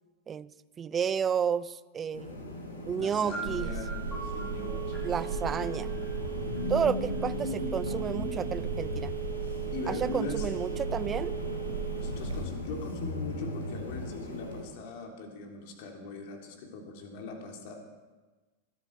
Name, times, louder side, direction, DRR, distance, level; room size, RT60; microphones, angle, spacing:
voice 1, 0.8-2.5 2.8-3.7 5.0-6.0 6.7-9.1 9.9-11.3, right 7 dB, 20° right, 18 dB, 0.5 m, -31 dB
sound 1, 2.1-14.6, left 2 dB, 75° left, 5.4 m, -38 dB
voice 2, 3.0-5.1 9.7-10.5 12.0-17.7, left 3 dB, 50° left, 1 dB, 3.5 m, -40 dB
sound 2, 3.3-7.2, right 4 dB, 10° left, 6.3 m, -44 dB
Telephone, 3.5-12.4, right 5 dB, 65° right, 2.3 m, -35 dB
20.5 x 13.0 x 4.8 m, 1.2 s
figure-of-eight pair, 90°, 0 cm